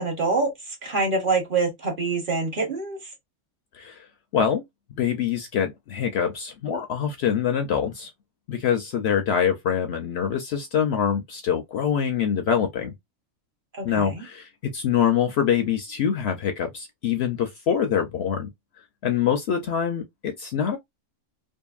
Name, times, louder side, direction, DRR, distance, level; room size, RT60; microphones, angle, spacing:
voice 1, 0.0-3.0 13.7-14.2, right 3 dB, 45° right, 1.0 m, -25 dB
voice 2, 3.7-4.1 4.3-4.6 4.9-8.1 8.5-12.9 13.8-18.5 19.0-20.8, left 8 dB, 65° left, 0.7 m, -25 dB
2.6 x 2.5 x 2.3 m
omnidirectional pair, 1.4 m